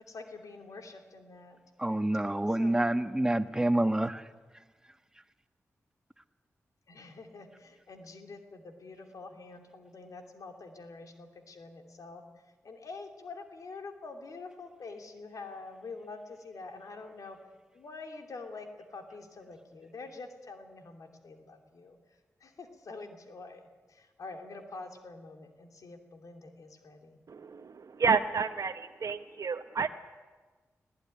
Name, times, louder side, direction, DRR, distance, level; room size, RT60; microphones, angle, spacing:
voice 1, 0.1-1.6 2.6-2.8 6.9-17.4 17.7-27.2, left 3 dB, 75° left, 2.9 m, -46 dB
voice 2, 1.8-4.3, right 1 dB, 10° right, 1.4 m, -27 dB
voice 3, 27.3-29.9, right 5 dB, 65° right, 0.9 m, -30 dB
19.0 x 17.5 x 9.9 m
cardioid pair, 50°, 6 cm